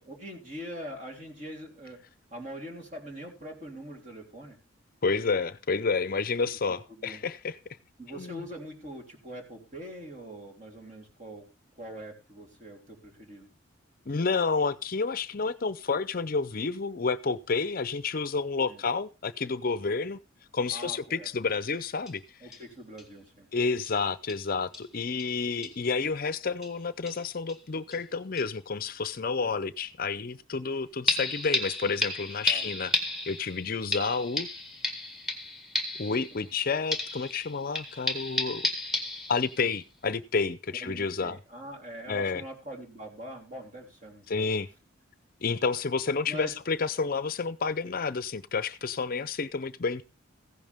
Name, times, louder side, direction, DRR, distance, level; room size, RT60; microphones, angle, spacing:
voice 1, 0.0-2.0 2.3-4.6 7.0-7.2 8.0-11.5 11.7-13.5 18.7-18.8 20.7-21.3 22.4-23.5 32.5-32.7 36.3-36.5 40.8-44.5 46.3-46.6, equal, 35° right, 3.4 m, -43 dB
voice 2, 5.0-7.6 8.1-8.4 14.1-20.2 20.5-22.4 23.5-34.5 36.0-38.7 39.3-41.4 42.1-42.4 44.3-44.7 45.4-50.0, left 4 dB, 45° left, 0.5 m, -30 dB
sound 1, 22.1-22.2 22.5-22.6 23.0-23.1 23.9-24.0 24.3-24.5 24.7-24.9 25.2-25.3 25.6-25.8 26.6-26.7 27.1-27.6 27.9-28.0 28.4-28.5 31.1-36.6 36.9-39.7 40.1-40.2, left 2 dB, ahead, 1.8 m, -32 dB
15.5 x 10.5 x 3.5 m
head